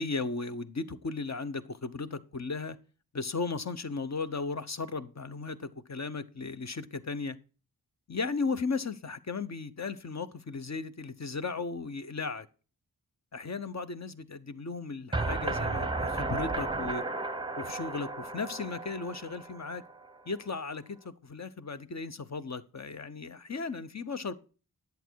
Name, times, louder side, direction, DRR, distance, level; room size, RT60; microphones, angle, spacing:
voice 1, 0.0-2.8 3.1-7.4 8.1-12.5 13.3-17.0 17.6-19.8 20.3-24.4, left 4 dB, 45° left, 0.9 m, -36 dB
sound 1, 15.1-20.1, right 3 dB, 15° right, 0.8 m, -34 dB
11.0 x 8.1 x 4.6 m
wide cardioid pair, 95°, 38 cm